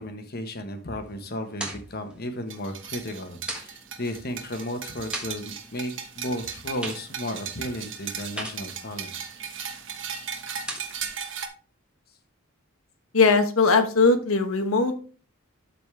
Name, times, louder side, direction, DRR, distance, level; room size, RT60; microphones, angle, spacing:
voice 1, 0.0-9.1, left 1 dB, 45° left, 6 dB, 1.2 m, -34 dB
sound 1, 1.0-11.2, right 1 dB, 5° right, 1.5 m, -42 dB
sound 2, 2.5-11.5, right 7 dB, 60° right, 1.2 m, -37 dB
voice 2, 13.1-15.0, left 4 dB, 80° left, 7 dB, 1.2 m, -20 dB
12.0 x 4.2 x 3.4 m, 0.39 s
head